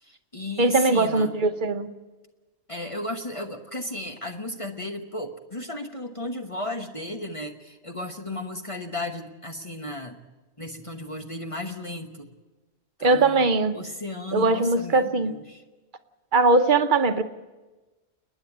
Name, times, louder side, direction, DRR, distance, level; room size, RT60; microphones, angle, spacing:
voice 1, 0.0-1.4 2.7-10.2 10.6-12.3 13.0-13.5 13.7-15.6, left 1 dB, 25° left, 1.2 m, -34 dB
voice 2, 0.6-1.9 13.0-13.8 14.3-15.3 16.3-17.2, right 3 dB, 45° right, 1.0 m, -20 dB
29.5 x 10.0 x 8.6 m
omnidirectional pair, 1.3 m